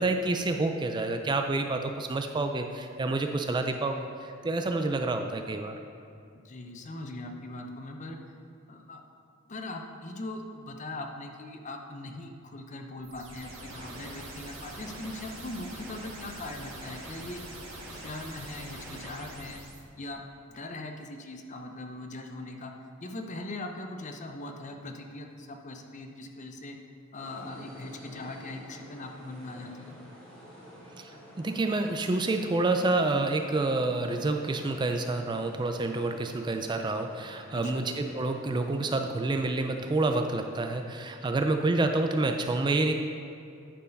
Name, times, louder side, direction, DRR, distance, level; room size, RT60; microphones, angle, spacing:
voice 1, 0.0-5.8 31.0-31.1 31.4-42.9, right 2 dB, 20° right, 6 dB, 0.4 m, -28 dB
voice 2, 6.3-8.2 8.7-9.0 9.5-17.4 17.9-19.6 20.0-22.7 23.0-26.8 27.1-30.0 37.5-37.9, left 2 dB, 35° left, 4 dB, 0.7 m, -40 dB
sound 1, 13.0-19.8, right 1 dB, 70° right, 1.6 m, -43 dB
sound 2, 27.1-40.7, equal, 10° left, 2.3 m, -50 dB
10.0 x 4.6 x 5.2 m, 2.5 s
head